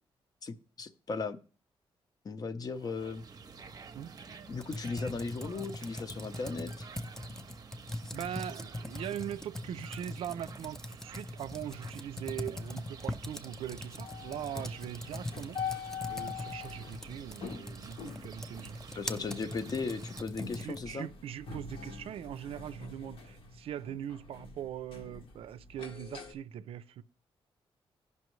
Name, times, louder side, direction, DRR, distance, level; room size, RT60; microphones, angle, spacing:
voice 1, 0.4-1.4 2.2-3.2 4.5-6.9 18.9-21.1, left 4 dB, 40° left, 0.7 m, -37 dB
sound 1, 2.6-20.2, right 5 dB, 40° right, 0.6 m, -51 dB
Computer keyboard, 4.5-21.0, left 1 dB, 5° left, 0.5 m, -42 dB
voice 2, 8.1-15.6 16.1-18.8 20.6-27.0, right 10 dB, 85° right, 0.4 m, -41 dB
sound 2, 12.5-26.3, left 6 dB, 70° left, 1.3 m, -45 dB
15.5 x 5.5 x 3.1 m
wide cardioid pair, 125°, 10 cm